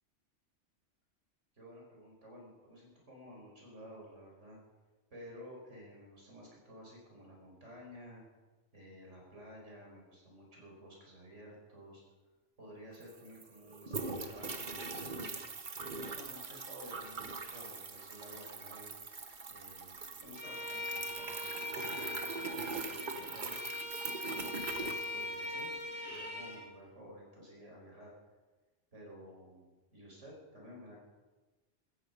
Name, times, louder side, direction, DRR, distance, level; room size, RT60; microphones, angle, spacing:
voice 1, 1.5-4.6 5.1-8.2 8.7-12.0 12.6-15.4 16.0-18.9 19.5-23.6 24.3-25.7 26.1-28.1 28.9-31.0, equal, 80° right, -1 dB, 5.2 m, -53 dB
sound 1, 12.7-12.8 13.0-25.7, right 4 dB, 45° right, 1.3 m, -42 dB
Bowed string instrument, 20.3-26.6, left 2 dB, 10° left, 3.1 m, -41 dB
16.0 x 14.0 x 5.4 m, 1.2 s
omnidirectional pair, 1.2 m